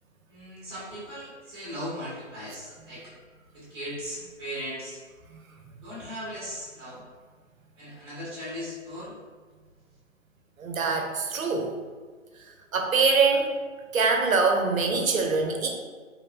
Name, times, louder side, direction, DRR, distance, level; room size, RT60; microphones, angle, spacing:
voice 1, 0.3-3.1 3.5-5.0 5.8-7.0 7.8-9.2, equal, 20° right, -8 dB, 0.8 m, -38 dB
voice 2, 10.6-11.7 12.7-13.5 13.9-15.7, right 4 dB, 90° right, 2 dB, 0.6 m, -23 dB
3.0 x 2.1 x 2.3 m, 1.5 s
figure-of-eight pair, 145°, 40 cm